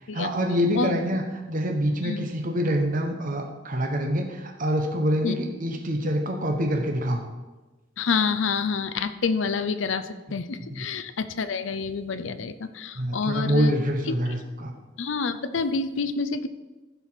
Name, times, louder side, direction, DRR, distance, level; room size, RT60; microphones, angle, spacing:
voice 1, 0.1-1.2 1.5-7.3 10.7-10.8 12.9-14.7, equal, 45° right, 3 dB, 1.1 m, -26 dB
voice 2, 8.0-13.8 14.1-14.2 15.0-16.5, left 5 dB, 75° left, 12 dB, 0.6 m, -28 dB
14.5 x 4.9 x 5.8 m, 1.2 s
head